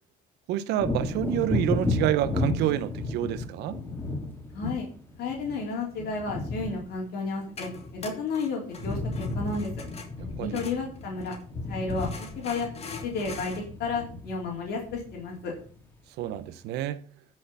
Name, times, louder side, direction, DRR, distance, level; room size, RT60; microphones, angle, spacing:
voice 1, 0.5-3.8 10.2-10.7 16.2-17.0, right 12 dB, 85° right, 0.9 m, -28 dB
Wind / Thunder, 0.7-8.3 8.6-15.8 16.3-16.4, left 3 dB, 10° left, 3.6 m, -34 dB
voice 2, 4.5-4.9 5.2-9.7 10.4-11.3 11.7-12.1 12.4-12.7 13.0-15.5, left 4 dB, 75° left, 3.9 m, -32 dB
sound 1, 7.2-11.5 11.9-13.6, left 4 dB, 40° left, 2.6 m, -43 dB
15.0 x 6.5 x 5.7 m
cardioid pair, 110°, 17 cm